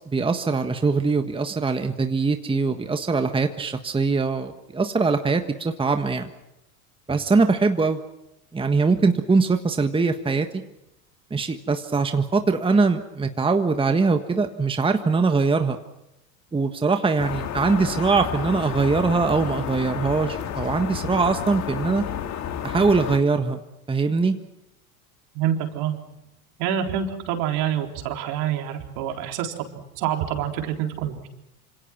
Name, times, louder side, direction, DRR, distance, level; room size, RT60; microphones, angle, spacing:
voice 1, 0.1-6.3 7.1-8.0 8.5-10.6 11.3-15.8 16.5-22.0 22.6-23.6 23.9-24.3, right 4 dB, 10° right, 7 dB, 1.5 m, -22 dB
sound 1, 17.2-23.2, left 9 dB, 40° left, 2.2 m, -31 dB
voice 2, 25.3-26.0 26.6-29.7 30.0-31.3, right 9 dB, 55° right, 4 dB, 4.0 m, -26 dB
27.0 x 26.5 x 6.1 m, 0.90 s
hypercardioid pair, 85°, 45 cm